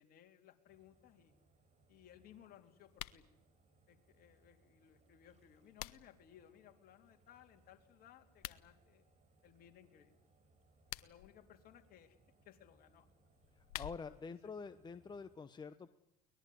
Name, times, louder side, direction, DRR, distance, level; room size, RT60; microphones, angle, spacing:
voice 1, 0.0-1.3 1.9-3.2 3.9-9.0 9.4-10.1 11.0-12.2 12.4-13.1 14.4-14.5, left 10 dB, 50° left, 4 dB, 3.7 m, -62 dB
sound 1, 0.7-15.4, right 2 dB, 35° right, 6.0 m, -72 dB
sound 2, 2.9-3.3 5.3-6.3 8.3-8.6 10.7-11.3 13.3-14.3, left 17 dB, 80° left, 1.0 m, -48 dB
voice 2, 13.6-15.9, left 5 dB, 20° left, 11 dB, 1.1 m, -47 dB
23.0 x 20.0 x 9.6 m, 0.91 s
hypercardioid pair, 85°, 20 cm